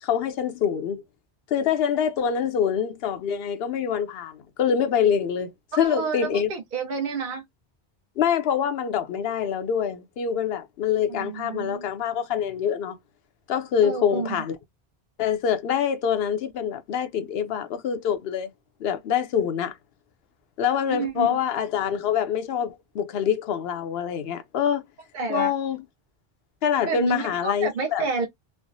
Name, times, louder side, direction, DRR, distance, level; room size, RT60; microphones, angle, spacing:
voice 1, 0.0-1.0 1.5-5.5 5.8-6.5 8.2-13.0 13.5-14.6 15.2-18.5 18.8-19.8 20.6-24.8 25.3-25.8 26.6-28.0, left 8 dB, 75° left, 0.8 m, -25 dB
voice 2, 5.7-7.4 11.1-11.9 13.8-14.3 20.9-21.4 25.1-25.5 26.8-28.3, right 4 dB, 55° right, 0.8 m, -29 dB
3.3 x 2.0 x 2.5 m
omnidirectional pair, 1.0 m